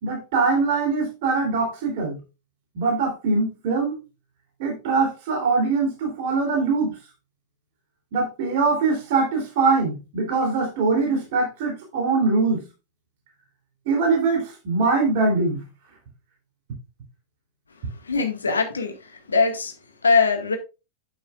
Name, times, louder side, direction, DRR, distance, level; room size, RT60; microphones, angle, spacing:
voice 1, 0.0-2.2 2.7-4.0 4.6-6.9 8.1-12.6 13.8-15.6, right 4 dB, 50° right, 3.4 m, -22 dB
voice 2, 18.1-18.9 19.3-19.7 20.0-20.6, left 4 dB, 75° left, 1.8 m, -21 dB
9.0 x 8.5 x 2.5 m
figure-of-eight pair, 90°, 0 cm